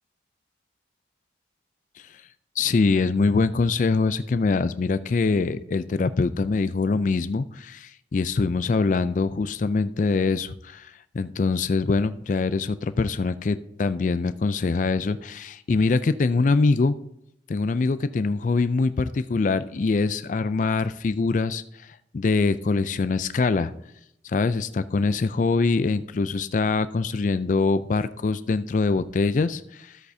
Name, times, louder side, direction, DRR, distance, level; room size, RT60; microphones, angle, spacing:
voice 1, 2.6-16.9 17.5-23.7 24.2-30.0, left 4 dB, 45° left, 13 dB, 0.3 m, -24 dB
13.5 x 8.1 x 2.7 m, 0.78 s
head